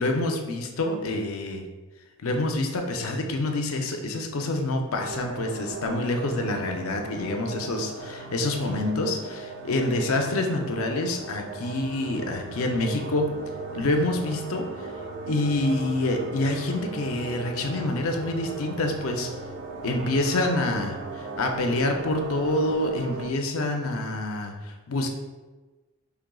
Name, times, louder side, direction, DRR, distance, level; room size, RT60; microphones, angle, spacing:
voice 1, 0.0-1.6 2.2-13.3 13.7-14.7 15.3-19.3 19.8-25.1, left 2 dB, 90° left, 3 dB, 0.5 m, -27 dB
sound 1, 5.1-23.3, right 3 dB, 60° right, 0.4 m, -38 dB
4.8 x 3.4 x 2.3 m, 1.2 s
head